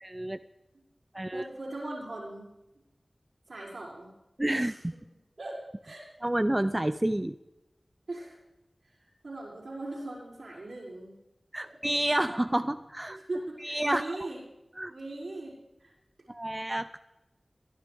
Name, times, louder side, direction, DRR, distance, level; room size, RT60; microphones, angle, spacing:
voice 1, 0.0-0.4 1.1-1.4 4.4-4.9 6.2-7.4 11.5-13.2 13.6-14.2 14.8-14.9 16.3-17.0, right 1 dB, 25° right, 11 dB, 0.5 m, -29 dB
voice 2, 1.3-2.5 3.5-4.1 4.6-4.8 5.4-6.1 8.1-8.4 8.8-11.1 11.6-11.8 13.1-14.4 14.9-15.9, right 2 dB, 85° right, -8 dB, 6.0 m, -40 dB
23.0 x 10.5 x 3.5 m, 0.96 s
wide cardioid pair, 40°, 0 cm